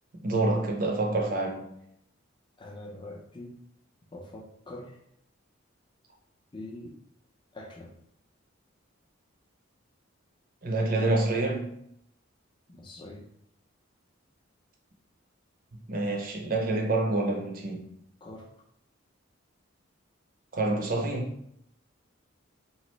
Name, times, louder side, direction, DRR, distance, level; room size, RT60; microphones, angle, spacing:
voice 1, 0.2-1.7 10.6-11.7 15.9-17.8 20.5-21.3, right 2 dB, 45° right, 0.6 m, -27 dB
voice 2, 2.6-3.5 4.1-5.0 6.5-6.9 7.5-7.9 12.7-13.3 18.2-18.5, left 1 dB, 25° left, 0.5 m, -43 dB
3.1 x 2.4 x 3.0 m
head